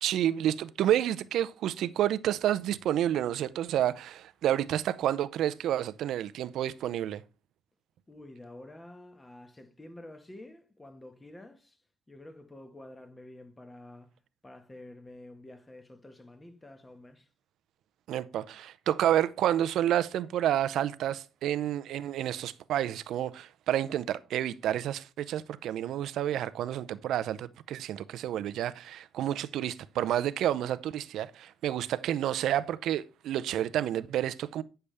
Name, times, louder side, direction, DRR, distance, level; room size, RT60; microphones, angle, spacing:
voice 1, 0.0-7.2 18.1-34.6, right 11 dB, 80° right, 0.5 m, -29 dB
voice 2, 8.1-11.8 12.1-14.1 14.4-17.3, left 1 dB, 20° left, 1.5 m, -49 dB
9.8 x 6.7 x 3.4 m
cardioid pair, 90°, 0 cm